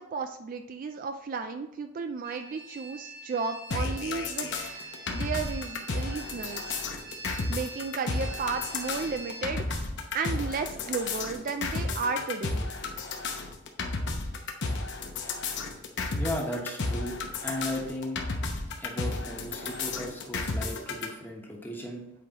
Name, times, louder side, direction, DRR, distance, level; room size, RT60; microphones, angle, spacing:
voice 1, 0.0-6.8 7.5-9.8 10.1-12.6, right 4 dB, 40° right, 7 dB, 0.3 m, -34 dB
sound 1, 2.2-9.5, right 2 dB, 20° right, 1.2 m, -44 dB
sound 2, 3.7-21.1, left 3 dB, 55° left, 0.8 m, -32 dB
voice 2, 16.1-17.2 17.4-18.2 18.8-22.0, left 1 dB, 10° left, -1 dB, 1.1 m, -35 dB
7.7 x 4.7 x 2.9 m, 0.84 s
head